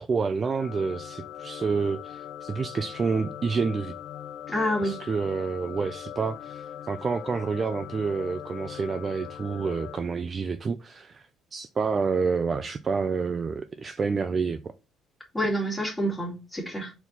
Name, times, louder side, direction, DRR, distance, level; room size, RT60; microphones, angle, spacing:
voice 1, 0.0-3.9 4.8-14.6, right 5 dB, 25° right, 0.4 m, -28 dB
sound 1, 0.6-10.0, left 10 dB, 50° left, 0.6 m, -40 dB
voice 2, 4.5-5.0 15.3-16.9, equal, 5° left, 2.3 m, -28 dB
4.5 x 4.2 x 5.3 m
cardioid pair, 160°, 0 cm